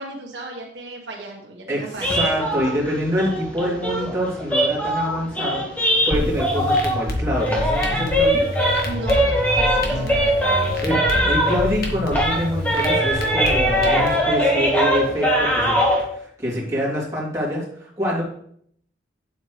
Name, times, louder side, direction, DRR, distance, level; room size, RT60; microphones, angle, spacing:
voice 1, 0.0-2.2 8.8-11.3, right 2 dB, 70° right, 0 dB, 1.3 m, -35 dB
voice 2, 1.7-8.4 10.8-11.0 11.2-15.8 16.1-18.2, equal, 15° right, -7 dB, 3.0 m, -25 dB
sound 1, 2.0-7.1 7.3-11.8 12.1-16.0, equal, 10° left, 1.7 m, -21 dB
sound 2, 6.1-14.1, left 1 dB, 55° left, 1.6 m, -28 dB
8.8 x 8.0 x 3.3 m, 0.66 s
head